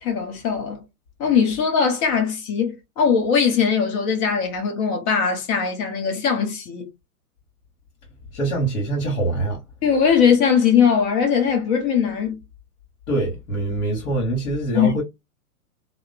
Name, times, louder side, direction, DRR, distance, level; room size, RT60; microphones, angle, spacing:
voice 1, 0.0-0.8 1.2-6.9 9.8-12.4 14.7-15.0, left 7 dB, 35° left, 0.9 m, -20 dB
voice 2, 8.3-9.6 13.1-15.0, right 2 dB, 60° left, 1.6 m, -24 dB
2.9 x 2.0 x 2.5 m
figure-of-eight pair, 110°, 44 cm